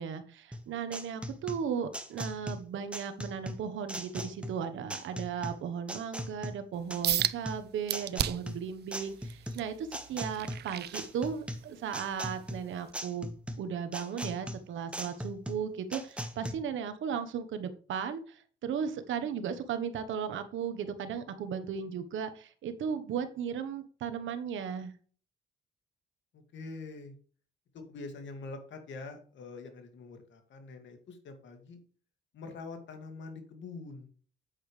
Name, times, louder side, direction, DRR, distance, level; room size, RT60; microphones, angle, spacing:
voice 1, 0.0-13.3 13.6-24.9, right 7 dB, 75° right, 10 dB, 1.2 m, -36 dB
sound 1, 0.5-16.5, equal, 5° right, 1.4 m, -40 dB
sound 2, 7.0-7.4 7.9-8.6 9.1-11.6 12.1-12.4 12.9-13.0, right 12 dB, 55° right, 0.5 m, -33 dB
voice 2, 26.3-27.1 27.7-31.8 32.3-34.1, left 3 dB, 70° left, 6 dB, 2.3 m, -45 dB
8.7 x 8.5 x 3.3 m, 0.43 s
cardioid pair, 90°, 20 cm